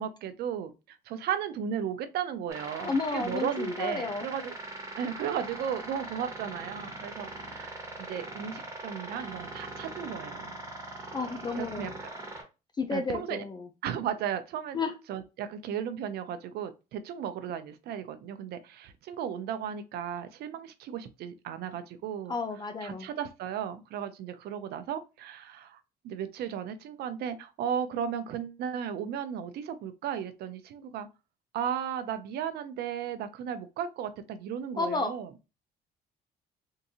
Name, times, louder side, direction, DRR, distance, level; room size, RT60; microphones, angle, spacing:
voice 1, 0.0-4.5 5.0-10.6 11.6-12.1 12.9-13.4 13.8-14.8 15.1-22.3 22.8-31.1 31.5-35.3, right 8 dB, 70° right, 0.6 m, -35 dB
sound 1, 2.5-12.4, right 2 dB, 20° right, 1.4 m, -41 dB
voice 2, 2.8-4.3 11.1-11.9 12.8-13.7 14.7-14.9 22.3-23.1 34.8-35.1, left 3 dB, 25° left, 0.5 m, -32 dB
3.7 x 2.6 x 2.7 m
cardioid pair, 110°, 17 cm